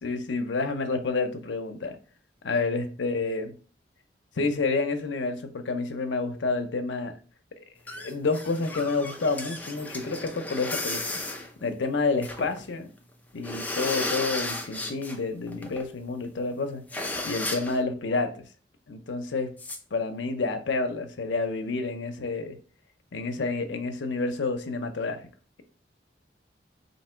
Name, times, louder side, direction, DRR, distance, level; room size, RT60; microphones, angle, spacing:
voice 1, 0.0-2.0 2.4-3.5 4.4-7.1 7.6-11.1 11.6-12.9 13.3-16.8 17.2-18.4 18.9-19.5 19.9-22.6 23.1-25.2, left 3 dB, 90° left, 7 dB, 0.6 m, -29 dB
sound 1, 7.9-12.6 13.0-13.1 13.4-15.2 15.5-15.8 16.2-16.3 16.5-16.6 16.9-17.8 19.6-19.8, left 2 dB, 10° left, 0.4 m, -34 dB
3.7 x 2.7 x 4.3 m, 0.39 s
head